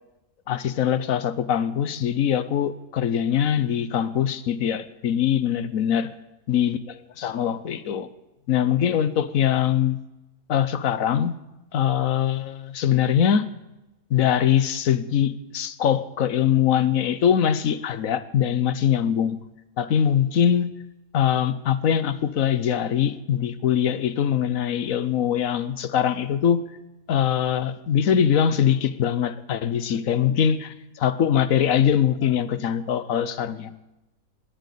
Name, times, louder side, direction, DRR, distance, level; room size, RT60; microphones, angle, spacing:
voice 1, 0.5-6.1 6.5-8.1 8.5-10.0 10.5-11.4 11.7-13.5 14.1-19.4 19.8-20.7 21.1-26.6 27.1-33.8, left 9 dB, 70° left, 13 dB, 1.3 m, -22 dB
20.5 x 8.1 x 8.4 m, 0.97 s
omnidirectional pair, 1.6 m